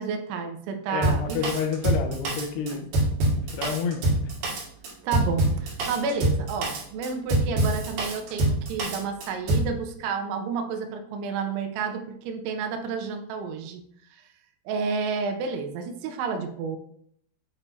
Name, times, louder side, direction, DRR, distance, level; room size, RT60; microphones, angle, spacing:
voice 1, 0.0-1.4 2.7-2.8 5.0-13.8 14.7-16.8, right 5 dB, 85° right, 5 dB, 3.0 m, -30 dB
voice 2, 0.9-2.9 3.4-4.0, left 6 dB, 80° left, 4 dB, 2.5 m, -29 dB
Drum kit, 1.0-9.7, right 2 dB, 60° right, 3.2 m, -25 dB
8.2 x 5.4 x 2.7 m, 0.65 s
omnidirectional pair, 5.4 m